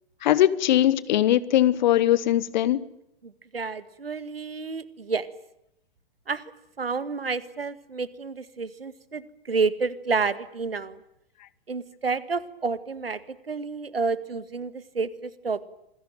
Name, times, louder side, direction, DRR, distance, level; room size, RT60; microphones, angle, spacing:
voice 1, 0.2-2.9, left 12 dB, 50° left, 1.5 m, -21 dB
voice 2, 3.2-5.3 6.3-6.4 6.8-11.0 11.7-13.2 13.5-15.6, right 4 dB, 75° right, 1.9 m, -30 dB
27.5 x 20.5 x 9.2 m
figure-of-eight pair, 105°, 30 cm